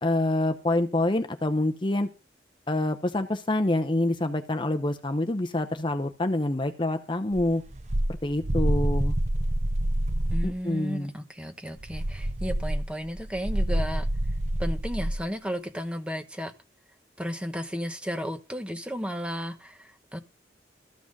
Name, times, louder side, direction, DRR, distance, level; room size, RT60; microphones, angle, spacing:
voice 1, 0.0-2.1 2.7-7.6 8.2-9.1 10.4-11.1, left 1 dB, 25° left, 0.8 m, -26 dB
sound 1, 7.4-10.6 11.8-15.2, right 1 dB, 40° right, 0.8 m, -27 dB
voice 2, 10.3-14.1 14.6-16.5 17.2-20.2, equal, 5° right, 1.1 m, -34 dB
14.0 x 6.0 x 6.6 m
head